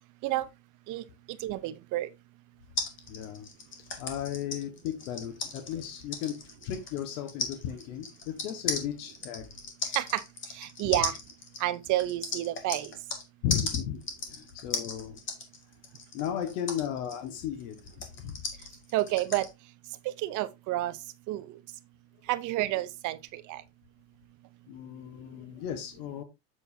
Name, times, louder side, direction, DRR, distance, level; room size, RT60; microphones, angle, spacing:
voice 1, 1.4-2.1 10.0-10.2 10.6-11.1 11.6-12.9 18.9-19.5 20.2-20.9 21.3-21.4 22.3-23.2 23.5-23.6, right 16 dB, 45° right, 0.8 m, -29 dB
sound 1, 2.8-13.2 13.5-19.5, left 4 dB, 30° left, 2.0 m, -36 dB
voice 2, 3.1-3.5 4.0-6.3 6.6-9.5 10.8-11.0 13.4-15.2 16.1-17.8 18.2-18.4 24.7-26.2, left 9 dB, 85° left, 1.6 m, -35 dB
8.1 x 7.2 x 2.7 m
cardioid pair, 150°, 41 cm